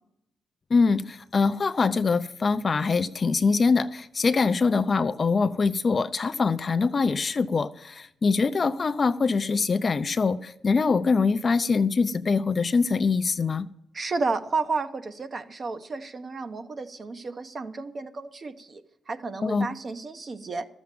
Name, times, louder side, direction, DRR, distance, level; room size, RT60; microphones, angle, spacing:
voice 1, 0.7-13.7 19.4-19.7, left 4 dB, 40° left, 12 dB, 0.5 m, -23 dB
voice 2, 13.9-18.8 19.1-20.7, right 3 dB, 40° right, 8 dB, 0.9 m, -32 dB
13.0 x 7.1 x 7.6 m, 0.77 s
cardioid pair, 100°, 0 cm